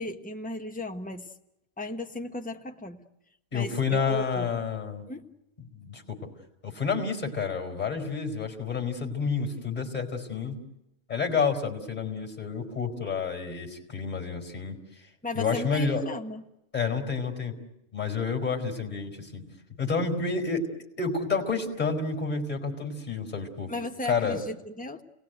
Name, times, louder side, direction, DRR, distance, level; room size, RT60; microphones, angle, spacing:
voice 1, 0.0-1.3 1.8-3.0 3.5-4.5 5.1-5.3 15.2-16.4 23.7-25.0, left 2 dB, 5° left, 4 dB, 1.2 m, -35 dB
voice 2, 3.5-5.0 5.7-6.2 6.6-10.5 11.1-14.8 15.3-16.0 16.7-17.5 17.9-19.5 19.8-20.6 21.0-23.7 24.1-24.4, left 5 dB, 35° left, 4 dB, 4.8 m, -29 dB
29.5 x 19.0 x 9.3 m, 0.87 s
omnidirectional pair, 1.3 m